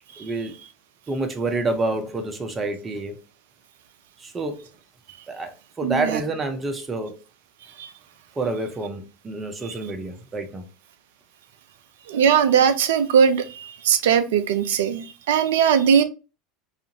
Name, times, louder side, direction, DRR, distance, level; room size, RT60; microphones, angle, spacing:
voice 1, 0.2-0.5 1.1-3.2 4.2-4.7 5.3-7.2 8.4-10.6, right 2 dB, 20° right, 0.6 m, -28 dB
voice 2, 5.8-6.2 7.8-7.9 12.1-16.0, right 7 dB, 65° right, 0.3 m, -19 dB
2.5 x 2.4 x 2.8 m
figure-of-eight pair, 75°, 0 cm